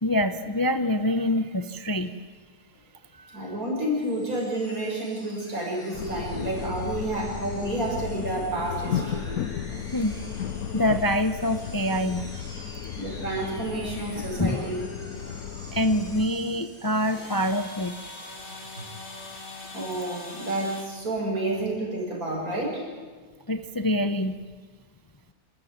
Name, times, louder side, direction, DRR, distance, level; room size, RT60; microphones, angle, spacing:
voice 1, 0.0-2.2 3.2-3.5 9.9-10.1 10.7-12.7 14.4-14.7 15.7-18.0 23.5-24.4, left 1 dB, 25° left, 9 dB, 0.5 m, -26 dB
voice 2, 3.3-9.4 13.0-14.8 18.8-18.9 19.7-22.9, right 1 dB, 80° right, -1 dB, 6.4 m, -30 dB
sound 1, 3.9-17.5, equal, 5° left, 5.7 m, -48 dB
sound 2, 5.9-16.3, left 9 dB, 85° left, 1.3 m, -34 dB
sound 3, 7.9-20.8, left 2 dB, 50° left, 3.3 m, -46 dB
28.0 x 13.5 x 9.5 m, 1.5 s
omnidirectional pair, 1.5 m